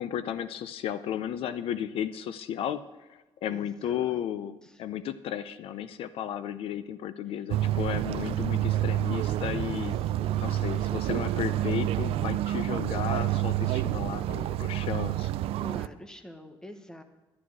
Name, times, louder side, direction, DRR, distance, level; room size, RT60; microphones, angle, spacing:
voice 1, 0.0-2.8 3.1-10.0 10.4-15.3, left 10 dB, 75° left, 14 dB, 0.5 m, -34 dB
voice 2, 3.5-4.2 4.6-4.8 7.3-7.4 9.9-11.4 15.6-17.0, equal, 5° left, 7 dB, 1.1 m, -47 dB
sound 1, 7.5-15.9, right 13 dB, 85° right, 0.4 m, -28 dB
11.0 x 11.0 x 4.7 m, 1.1 s
cardioid pair, 140°, 10 cm